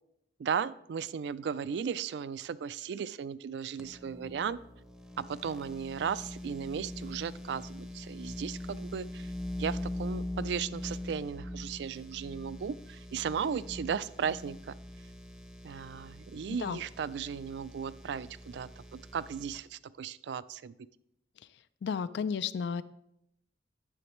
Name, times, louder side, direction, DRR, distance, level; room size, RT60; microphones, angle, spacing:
voice 1, 0.4-4.6 5.2-9.3 9.6-14.8 15.6-20.8, right 7 dB, 70° right, 17 dB, 0.3 m, -36 dB
sound 1, 3.8-19.6, left 1 dB, 5° right, 0.6 m, -42 dB
voice 2, 21.8-22.8, left 6 dB, 70° left, 16 dB, 0.3 m, -33 dB
9.7 x 7.1 x 3.0 m, 0.79 s
head